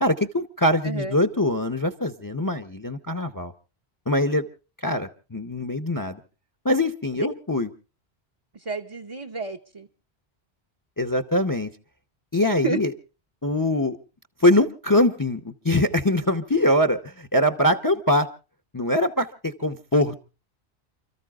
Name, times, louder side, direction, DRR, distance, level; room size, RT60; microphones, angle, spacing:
voice 1, 0.0-3.5 4.1-4.5 4.8-6.2 6.6-7.7 11.0-11.7 12.3-12.9 13.4-14.0 14.4-18.3 18.7-20.2, left 1 dB, 20° left, 9 dB, 0.8 m, -23 dB
voice 2, 8.5-9.9 12.6-12.8, right 4 dB, 30° right, 2 dB, 0.9 m, -30 dB
30.0 x 14.0 x 2.4 m, 0.34 s
omnidirectional pair, 1.1 m